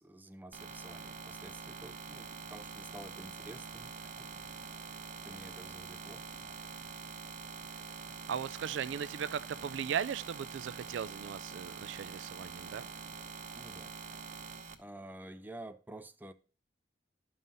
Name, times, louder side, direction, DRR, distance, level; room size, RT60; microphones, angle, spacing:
voice 1, 0.0-4.3 5.2-6.3 13.5-13.9 14.8-16.3, right 1 dB, 10° right, 0.5 m, -50 dB
sound 1, 0.5-14.7, right 5 dB, 45° right, 0.9 m, -45 dB
voice 2, 8.3-12.9, right 8 dB, 70° right, 0.3 m, -37 dB
12.0 x 5.6 x 2.6 m
head